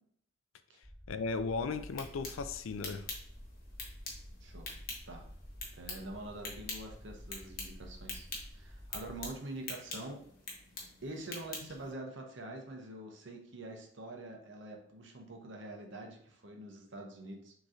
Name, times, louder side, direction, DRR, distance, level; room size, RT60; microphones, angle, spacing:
sound 1, 0.8-9.3, equal, ahead, 0.4 m, -51 dB
voice 1, 1.1-3.1, left 4 dB, 80° left, 11 dB, 0.4 m, -36 dB
sound 2, 1.7-11.9, left 3 dB, 45° left, 1.1 m, -46 dB
voice 2, 4.4-4.8 5.1-5.3 5.7-8.3 8.5-10.2 11.0-17.5, right 2 dB, 65° right, 2 dB, 0.9 m, -45 dB
6.2 x 3.0 x 2.7 m, 0.65 s
head